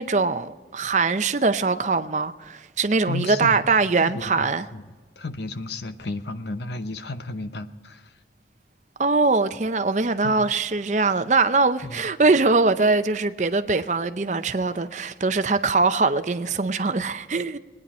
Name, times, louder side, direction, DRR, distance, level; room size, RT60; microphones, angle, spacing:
voice 1, 0.0-4.7 9.0-17.6, right 3 dB, 40° right, 0.6 m, -22 dB
voice 2, 3.1-4.8 5.2-8.1 10.2-10.5 11.8-12.1, left 2 dB, 75° left, 0.9 m, -33 dB
21.5 x 9.7 x 4.3 m
head